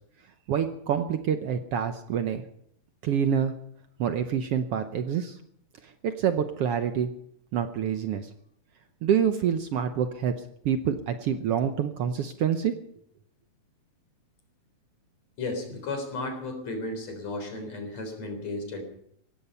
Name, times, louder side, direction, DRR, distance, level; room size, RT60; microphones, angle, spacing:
voice 1, 0.5-2.4 3.0-3.5 4.0-5.4 5.8-7.1 7.5-8.3 9.0-10.3 10.6-12.7, right 8 dB, 70° right, 8 dB, 1.6 m, -27 dB
voice 2, 15.4-18.8, left 2 dB, 65° left, 5 dB, 5.1 m, -34 dB
17.0 x 15.5 x 5.5 m, 0.71 s
omnidirectional pair, 3.3 m